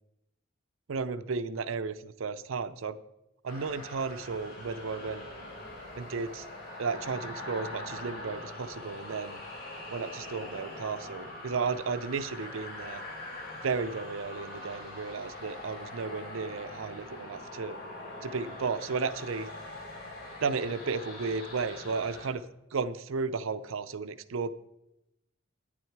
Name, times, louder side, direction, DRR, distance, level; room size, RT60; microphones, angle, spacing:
voice 1, 0.9-3.0 3.4-5.3 6.0-6.5 6.8-9.4 9.9-13.0 13.6-17.8 18.2-19.5 20.4-22.4 22.7-24.5, right 4 dB, 80° right, 13 dB, 0.5 m, -34 dB
sound 1, 3.5-22.3, left 1 dB, 50° left, 3.4 m, -43 dB
11.0 x 9.5 x 4.6 m, 0.88 s
head